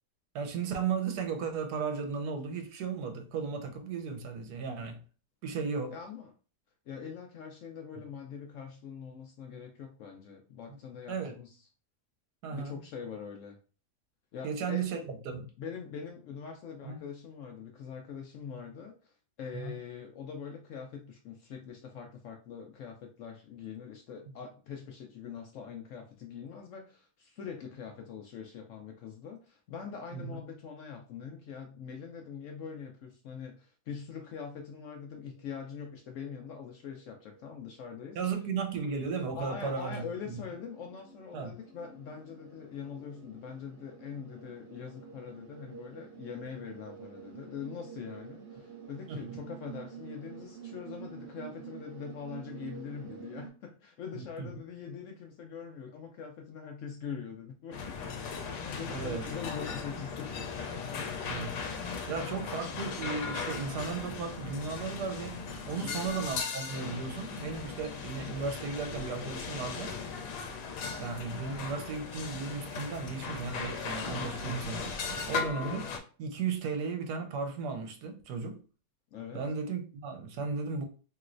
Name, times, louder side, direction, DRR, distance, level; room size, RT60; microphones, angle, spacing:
voice 1, 0.3-5.0 5.4-5.9 11.1-11.4 12.4-12.8 14.4-15.5 16.8-17.0 19.5-19.7 30.1-30.4 38.2-40.4 41.3-41.5 49.1-49.4 54.1-54.5 58.8-59.3 61.2-61.5 62.1-65.4 65.7-70.0 71.0-75.9 76.2-78.6 79.3-80.8, right 5 dB, 80° right, 1.2 m, -35 dB
voice 2, 5.9-6.3 6.9-11.6 12.5-13.6 14.3-15.0 15.6-38.2 39.3-58.0 58.2-60.4 61.9-62.4 65.8-66.0 79.1-79.5, left 6 dB, 70° left, 0.7 m, -43 dB
sound 1, 34.9-35.0 35.4-53.5, right 7 dB, 60° right, 0.9 m, -49 dB
sound 2, 57.7-76.0, left 5 dB, 90° left, 1.2 m, -38 dB
3.0 x 3.0 x 2.5 m
omnidirectional pair, 1.7 m